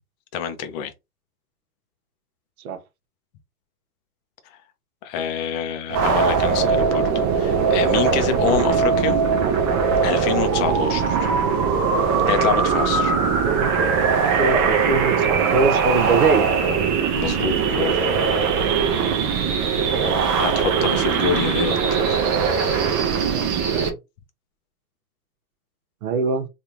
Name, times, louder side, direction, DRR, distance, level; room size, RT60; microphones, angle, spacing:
voice 1, 0.3-0.9 5.0-9.2 10.0-11.3 12.3-13.2 17.1-18.0 20.4-21.8 22.1-22.4, left 7 dB, 30° left, 0.6 m, -26 dB
sound 1, 5.9-23.9, right 6 dB, 20° right, 0.4 m, -20 dB
voice 2, 13.4-13.7 14.1-16.5 23.0-24.0 26.0-26.5, right 4 dB, 65° right, 1.0 m, -24 dB
3.4 x 2.5 x 2.8 m
hypercardioid pair, 130°, 46 cm